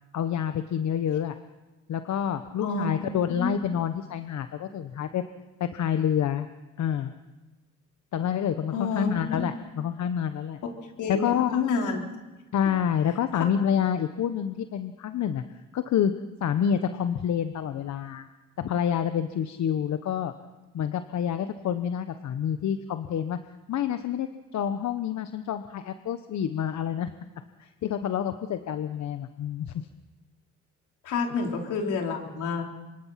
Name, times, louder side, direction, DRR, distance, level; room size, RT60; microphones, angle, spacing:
voice 1, 0.1-1.3 1.9-5.2 5.6-6.5 6.8-7.1 8.1-10.6 11.1-11.6 12.5-15.4 15.7-16.2 16.4-18.2 18.6-20.3 20.7-23.4 23.7-27.1 27.6-29.7, left 9 dB, 65° left, 9 dB, 1.2 m, -28 dB
voice 2, 8.7-9.1 11.0-12.0 12.7-12.8 13.4-13.5 31.0-32.6, left 5 dB, 85° left, 1 dB, 4.3 m, -28 dB
27.0 x 24.5 x 5.9 m, 1.2 s
cardioid pair, 90°, 30 cm